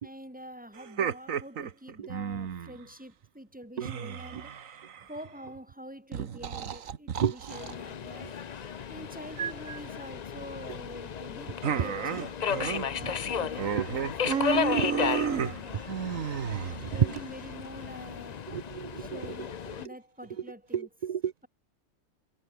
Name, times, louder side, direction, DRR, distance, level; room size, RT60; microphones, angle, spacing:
voice 1, 0.0-4.6 5.0-15.8 16.9-18.4 19.0-20.9, equal, 5° right, 4.1 m, -46 dB
sound 1, 0.8-2.8 3.8-5.2 6.1-7.7 9.4-9.8 11.6-12.9 13.1-13.3 13.6-17.2, right 8 dB, 85° right, 1.6 m, -32 dB
Subway metro underground, 7.5-19.9, left 7 dB, 45° left, 0.6 m, -34 dB
voice 2, 16.5-17.1 18.5-19.2 20.7-21.3, right 8 dB, 55° right, 0.4 m, -30 dB
omnidirectional pair, 1.4 m